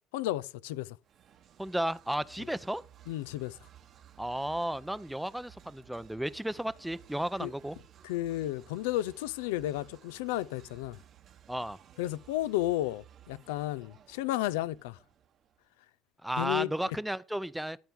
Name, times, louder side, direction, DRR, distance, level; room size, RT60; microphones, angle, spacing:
voice 1, 0.1-1.0 3.1-3.6 7.4-7.5 8.0-11.0 12.0-15.0 16.4-17.0, left 15 dB, 90° left, 0.4 m, -33 dB
sound 1, 1.0-15.7, right 10 dB, 50° right, 1.1 m, -57 dB
voice 2, 1.6-2.8 4.2-7.8 11.5-11.8 16.2-17.8, right 1 dB, 5° right, 0.5 m, -33 dB
12.5 x 4.6 x 7.0 m
supercardioid pair, 100°, 0 cm